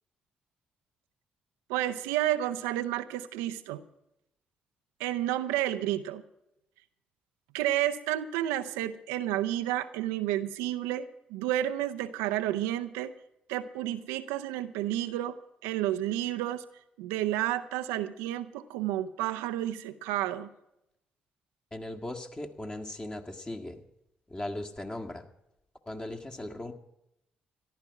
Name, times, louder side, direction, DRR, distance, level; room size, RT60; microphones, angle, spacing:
voice 1, 1.7-3.8 5.0-6.2 7.5-13.1 13.5-15.4 15.6-16.6 17.0-20.5, right 13 dB, 75° right, 9 dB, 0.6 m, -31 dB
voice 2, 21.7-23.8 24.3-25.3 25.8-26.7, left 1 dB, 20° left, 3 dB, 1.8 m, -38 dB
14.0 x 12.0 x 5.9 m, 0.84 s
hypercardioid pair, 40°, 4 cm